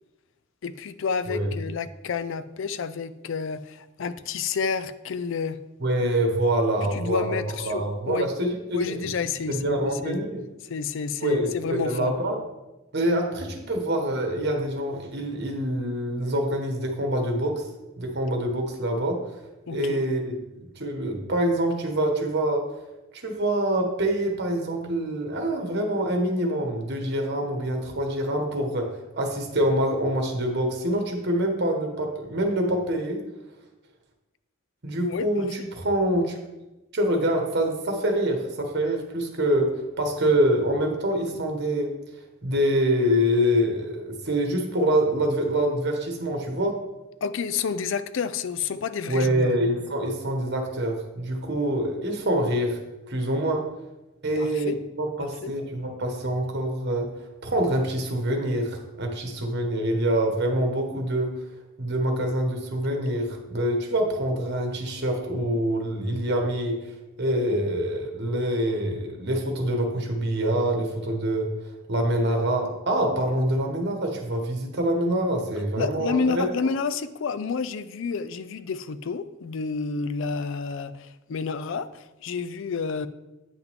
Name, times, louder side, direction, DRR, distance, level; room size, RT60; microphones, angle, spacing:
voice 1, 0.6-5.6 6.8-8.3 8.7-10.2 10.7-12.2 19.7-20.0 35.0-35.7 47.2-49.5 54.4-54.8 55.2-55.5 75.8-83.1, left 5 dB, 65° left, 14 dB, 0.4 m, -30 dB
voice 2, 5.8-9.1 9.5-10.4 11.2-12.4 12.9-17.6 18.0-19.4 19.7-22.6 23.1-28.9 29.1-33.2 34.8-36.4 36.9-39.7 40.0-41.9 42.4-46.7 49.1-52.8 53.1-53.6 54.2-57.1 57.4-61.3 61.8-66.9 67.2-71.5 71.9-76.5, right 1 dB, 55° right, 3 dB, 1.4 m, -25 dB
9.1 x 5.9 x 3.6 m, 1.0 s
head